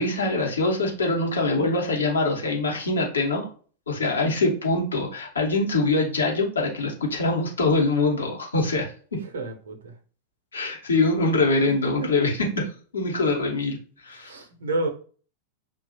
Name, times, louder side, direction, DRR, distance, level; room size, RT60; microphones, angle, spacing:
voice 1, 0.0-3.5 3.9-8.9 10.5-12.5 12.9-14.3, left 2 dB, 70° left, 0.9 m, -24 dB
voice 2, 9.3-9.9 12.0-12.1 14.2-14.9, right 2 dB, 65° right, 0.6 m, -29 dB
2.6 x 2.3 x 2.8 m
figure-of-eight pair, 90°, 0 cm